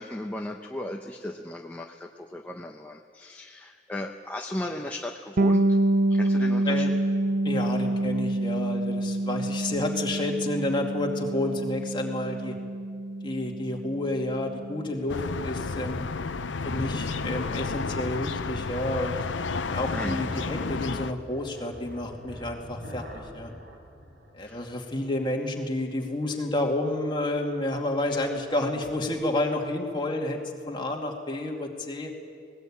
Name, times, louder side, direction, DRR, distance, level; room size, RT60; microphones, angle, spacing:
voice 1, 0.0-5.8 6.1-7.0 19.9-20.2 24.4-24.7, left 1 dB, 10° left, 1 dB, 0.9 m, -36 dB
Bass guitar, 5.4-15.0, right 1 dB, 50° right, 0.5 m, -27 dB
voice 2, 7.4-12.5 13.2-16.1 16.6-19.2 19.7-23.5 24.3-30.4 30.7-32.1, left 1 dB, 25° left, 1 dB, 2.4 m, -30 dB
sound 1, 15.1-21.1, left 4 dB, 80° left, 0.7 m, -31 dB
sound 2, 17.6-25.2, equal, 65° right, 4.8 m, -45 dB
19.5 x 19.0 x 8.7 m, 2.2 s
head